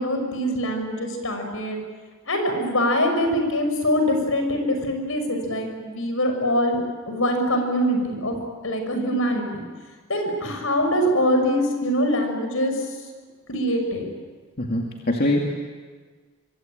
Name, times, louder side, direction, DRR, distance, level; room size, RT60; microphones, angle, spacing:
voice 1, 0.0-1.8 2.3-6.8 7.1-8.4 8.6-9.6 10.1-12.7 13.5-14.1, equal, 70° left, 5 dB, 6.3 m, -23 dB
voice 2, 14.6-15.5, left 1 dB, 45° left, 0 dB, 2.4 m, -23 dB
25.0 x 24.5 x 9.0 m, 1.5 s
head